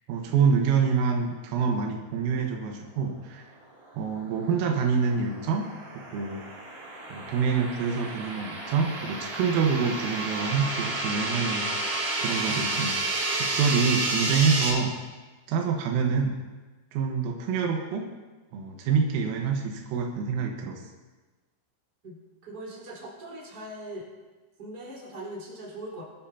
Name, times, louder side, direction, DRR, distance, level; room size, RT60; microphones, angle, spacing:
voice 1, 0.1-3.5 4.0-5.7 6.1-6.4 7.1-11.7 12.2-13.0 13.3-14.9 15.5-16.3 16.9-18.1 18.5-20.8, right 5 dB, 85° right, 1 dB, 3.9 m, -26 dB
sound 1, 4.3-14.7, right 2 dB, 70° right, 6.4 m, -31 dB
voice 2, 22.4-24.1 24.6-26.0, right 1 dB, 20° right, -5 dB, 3.9 m, -40 dB
23.0 x 12.5 x 2.8 m, 1.2 s
omnidirectional pair, 6.0 m